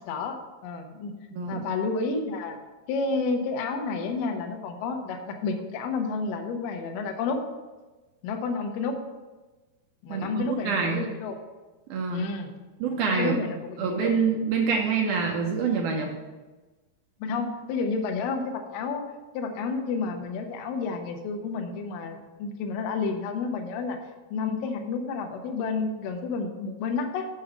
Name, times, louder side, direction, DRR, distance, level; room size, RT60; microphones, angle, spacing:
voice 1, 0.1-0.4 0.6-1.2 1.5-2.6 2.9-7.4 8.2-8.9 10.0-11.4 12.1-12.5 12.9-14.1 17.2-19.0 19.3-24.0 24.3-27.3, left 4 dB, 70° left, 3 dB, 2.3 m, -30 dB
voice 2, 1.3-1.6 10.1-11.1 11.9-12.3 12.8-13.4 13.8-16.1, right 5 dB, 75° right, 1 dB, 1.9 m, -26 dB
7.6 x 6.2 x 6.0 m, 1.2 s
omnidirectional pair, 4.8 m